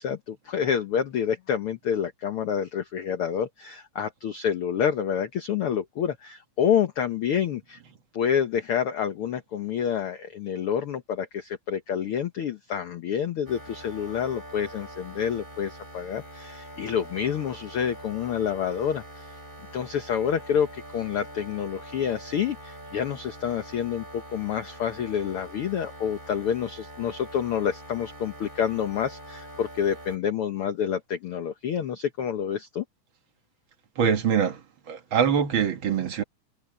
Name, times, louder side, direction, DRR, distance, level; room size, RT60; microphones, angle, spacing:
voice 1, 0.0-7.8 8.1-19.3 19.7-32.8, left 8 dB, 60° left, 1.5 m, -28 dB
sound 1, 13.5-30.2, right 1 dB, 15° right, 5.5 m, -44 dB
voice 2, 34.0-34.6 34.9-36.2, right 7 dB, 50° right, 1.7 m, -23 dB
omnidirectional pair, 3.7 m